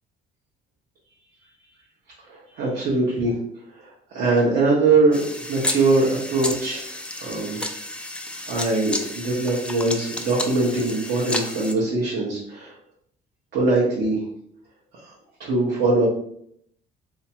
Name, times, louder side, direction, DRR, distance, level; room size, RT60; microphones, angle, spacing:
voice 1, 2.3-3.3 3.8-5.2 5.5-6.8 7.2-7.6 8.5-12.7 13.5-14.2 14.9-15.1 15.4-16.1, right 3 dB, 70° right, -6 dB, 1.1 m, -22 dB
sound 1, 5.1-11.7, left 1 dB, 5° left, 0.4 m, -32 dB
3.4 x 2.8 x 2.9 m, 0.69 s
cardioid pair, 110°, 17 cm